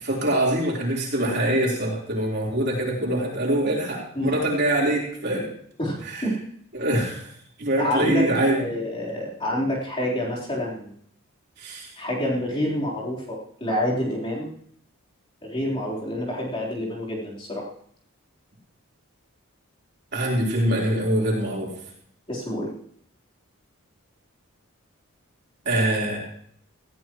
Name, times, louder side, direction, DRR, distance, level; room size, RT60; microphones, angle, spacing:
voice 1, 0.0-5.5 6.0-6.3 6.7-7.3 7.6-8.6 11.6-11.9 20.1-21.7 25.7-26.2, right 1 dB, 50° right, -3 dB, 4.0 m, -24 dB
voice 2, 5.8-6.3 7.8-8.3 8.6-10.9 12.0-14.5 15.4-17.7 22.3-22.7, left 1 dB, 25° left, -6 dB, 3.8 m, -27 dB
18.5 x 15.5 x 3.1 m, 0.65 s
head